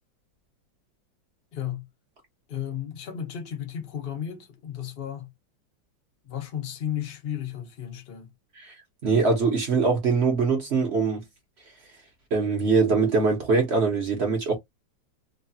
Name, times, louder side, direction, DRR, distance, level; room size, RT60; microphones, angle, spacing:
voice 1, 1.5-1.9 2.5-5.3 6.2-8.3, left 10 dB, 60° left, 0.5 m, -34 dB
voice 2, 9.0-11.2 12.3-14.5, right 4 dB, 50° right, 0.8 m, -22 dB
3.2 x 2.3 x 2.6 m
omnidirectional pair, 2.1 m